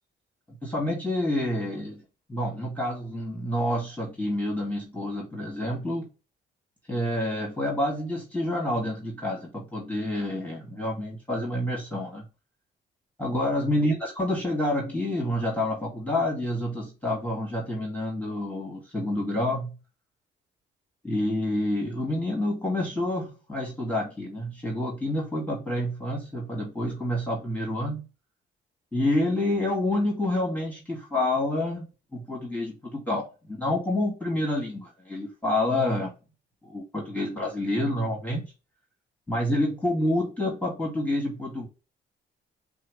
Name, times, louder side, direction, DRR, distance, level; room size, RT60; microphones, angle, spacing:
voice 1, 0.6-2.0 2.3-6.1 6.9-12.3 13.2-19.8 21.0-28.1 28.9-36.1 36.6-38.5 39.3-41.7, left 1 dB, 10° left, 2.2 m, -28 dB
5.7 x 2.3 x 3.2 m
cardioid pair, 90°, 20 cm